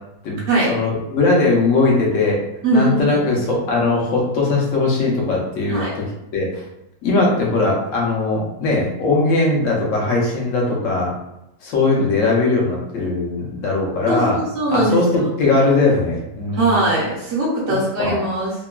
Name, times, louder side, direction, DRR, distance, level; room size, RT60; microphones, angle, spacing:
voice 1, 0.7-2.4 2.7-6.1 6.3-6.6 7.0-11.1 11.6-14.4 14.7-16.8 18.0-18.2, left 3 dB, 65° left, -2 dB, 1.0 m, -19 dB
voice 2, 2.6-3.3 5.7-5.9 14.1-15.0 16.5-18.5, right 2 dB, 60° right, -6 dB, 0.8 m, -20 dB
3.0 x 2.1 x 2.3 m, 0.88 s
omnidirectional pair, 1.6 m